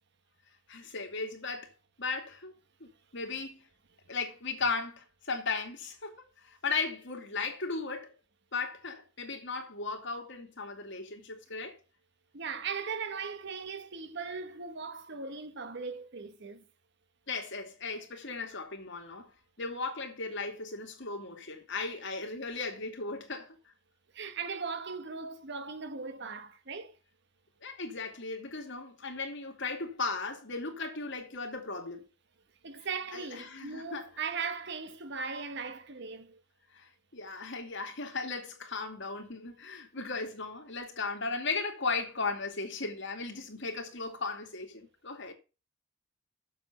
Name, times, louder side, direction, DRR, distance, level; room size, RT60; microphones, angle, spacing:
voice 1, 0.7-1.7 2.0-2.5 2.8-3.6 4.1-8.1 8.5-11.8 17.3-19.3 19.6-23.5 27.6-32.0 33.1-34.1 36.7-45.3, left 4 dB, 60° left, 2.4 m, -36 dB
voice 2, 12.3-16.6 24.1-27.0 32.6-36.4, right 5 dB, 55° right, 1.1 m, -38 dB
7.3 x 6.9 x 7.1 m
head